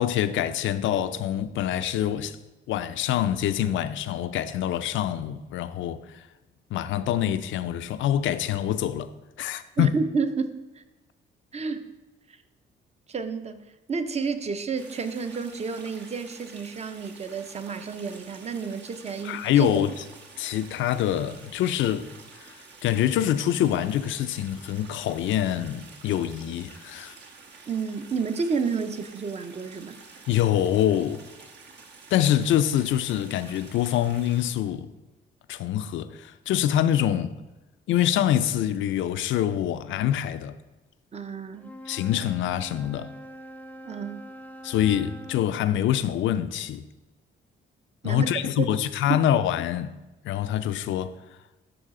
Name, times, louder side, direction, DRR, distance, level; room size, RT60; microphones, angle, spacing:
voice 1, 0.0-2.4 2.7-6.3 6.7-9.1 9.4-10.0 19.2-20.0 20.4-22.1 22.4-27.2 30.3-31.2 32.1-34.9 35.5-37.3 37.9-40.6 41.9-43.1 44.6-46.8 48.0-49.9 50.2-51.2, left 11 dB, 75° left, 0.4 m, -25 dB
voice 2, 9.8-10.8 11.5-11.9 13.1-19.7 27.7-30.0 41.1-41.7 43.8-44.3 48.0-48.3 48.6-48.7 49.1-49.3, right 5 dB, 35° right, 0.7 m, -30 dB
sound 1, 14.8-34.5, right 4 dB, 60° right, 1.3 m, -49 dB
Wind instrument woodwind instrument, 41.5-45.5, equal, 10° left, 0.4 m, -44 dB
12.0 x 4.0 x 3.7 m
cardioid pair, 90°, 20 cm